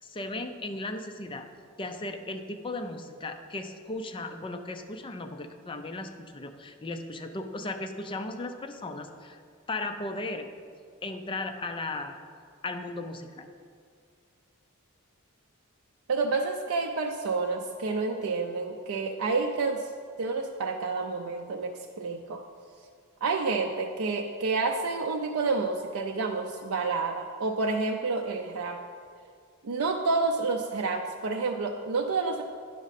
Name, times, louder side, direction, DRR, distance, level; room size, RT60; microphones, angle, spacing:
voice 1, 0.0-1.5 1.8-9.4 9.7-10.5 11.0-12.2 12.6-13.5, left 2 dB, 25° left, 7 dB, 0.4 m, -36 dB
voice 2, 16.1-19.9 20.2-21.7 22.0-22.4 23.2-28.8 29.6-32.4, right 4 dB, 65° right, 2 dB, 0.5 m, -29 dB
9.9 x 6.1 x 4.1 m, 2.2 s
head